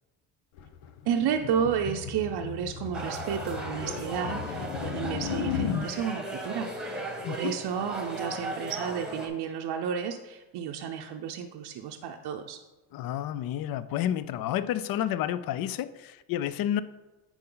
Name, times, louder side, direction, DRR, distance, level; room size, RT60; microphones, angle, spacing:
sound 1, 0.6-5.9, left 7 dB, 90° left, 0.8 m, -35 dB
voice 1, 1.1-12.6, right 8 dB, 55° right, 3 dB, 0.6 m, -32 dB
sound 2, 2.9-9.3, right 1 dB, ahead, 1.1 m, -37 dB
voice 2, 7.2-7.6 12.9-16.8, left 11 dB, 50° left, 15 dB, 0.4 m, -30 dB
10.0 x 4.3 x 3.8 m, 1.1 s
cardioid pair, 125°, 47 cm